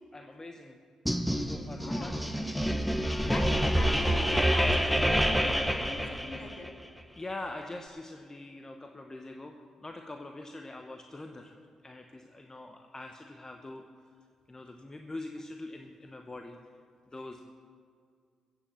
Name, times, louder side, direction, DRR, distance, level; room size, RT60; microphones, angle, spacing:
voice 1, 0.1-0.8 1.5-2.2 7.2-11.6 11.8-13.8 14.5-16.6 17.1-17.4, left 2 dB, 25° left, 4 dB, 1.1 m, -43 dB
sound 1, 1.1-6.7, equal, ahead, 1.1 m, -27 dB
voice 2, 1.8-2.2 3.2-6.7, left 2 dB, 45° left, 3 dB, 2.3 m, -40 dB
15.5 x 7.9 x 7.5 m, 2.2 s
hypercardioid pair, 40°, 2 cm